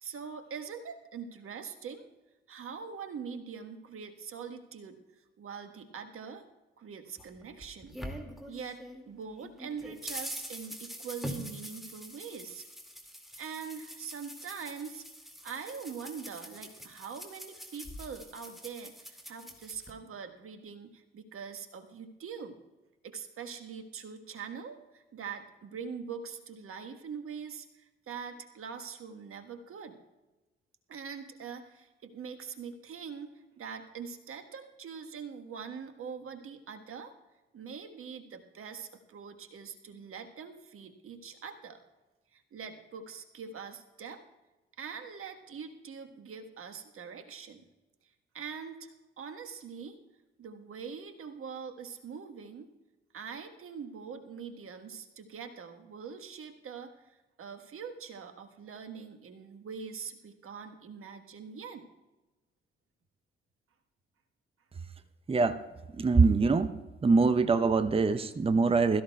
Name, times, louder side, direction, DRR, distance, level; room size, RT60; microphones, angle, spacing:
voice 1, 0.0-2.1 2.5-6.4 6.8-8.0 8.5-12.7 13.4-15.0 15.4-22.6 23.0-30.0 30.9-37.1 37.5-41.8 42.3-44.2 44.8-47.7 48.3-50.0 50.4-52.7 53.1-61.9, right 6 dB, 45° right, 6 dB, 1.4 m, -43 dB
sound 1, 7.2-9.0 9.4-19.9, equal, ahead, 2.2 m, -44 dB
voice 2, 65.3-65.6 65.9-66.7 67.0-69.0, right 4 dB, 20° right, 11 dB, 0.7 m, -24 dB
21.5 x 13.5 x 2.3 m, 1.1 s
figure-of-eight pair, 40°, 29 cm